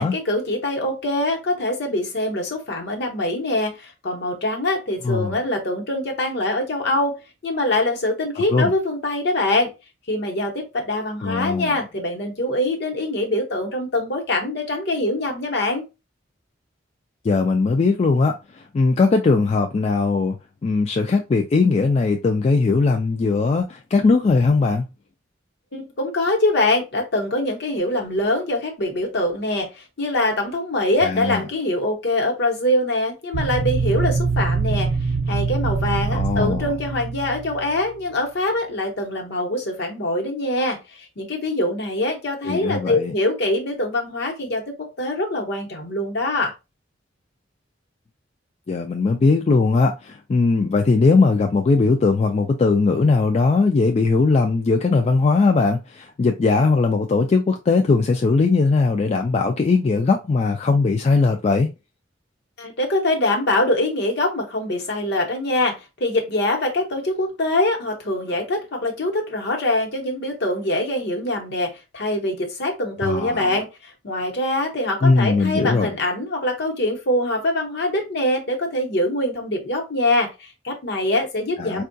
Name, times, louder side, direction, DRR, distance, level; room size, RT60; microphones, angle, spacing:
voice 1, 0.0-9.7 10.1-15.8 25.7-34.9 35.3-46.5 62.6-81.8, left 1 dB, 60° left, 1.0 m, -24 dB
voice 2, 11.2-11.8 17.2-18.4 18.7-20.4 20.6-24.8 31.0-31.4 36.1-36.7 42.4-43.1 48.7-61.7 73.0-73.5 75.0-75.9 81.6-81.8, left 4 dB, 35° left, 0.3 m, -19 dB
sound 1, 33.3-38.0, right 4 dB, 55° right, 0.4 m, -24 dB
4.4 x 2.3 x 2.6 m
head